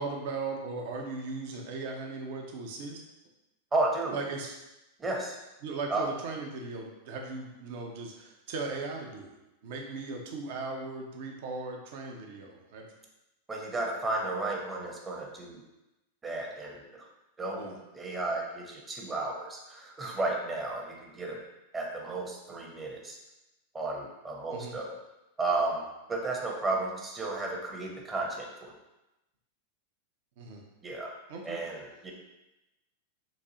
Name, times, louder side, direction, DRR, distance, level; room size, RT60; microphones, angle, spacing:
voice 1, 0.0-3.0 4.1-4.5 5.6-12.9 17.6-17.7 24.5-24.7 30.4-30.6 31.3-31.6, right 3 dB, 50° right, 1 dB, 0.7 m, -38 dB
voice 2, 3.7-4.2 5.0-5.4 5.9-6.1 13.5-15.6 16.2-17.0 17.4-21.4 21.7-23.2 23.7-25.0 25.4-25.8 26.1-28.7 30.8-31.1 31.4-32.1, right 2 dB, 15° right, -1 dB, 0.8 m, -33 dB
4.1 x 2.7 x 3.7 m, 0.97 s
figure-of-eight pair, 90°, 0 cm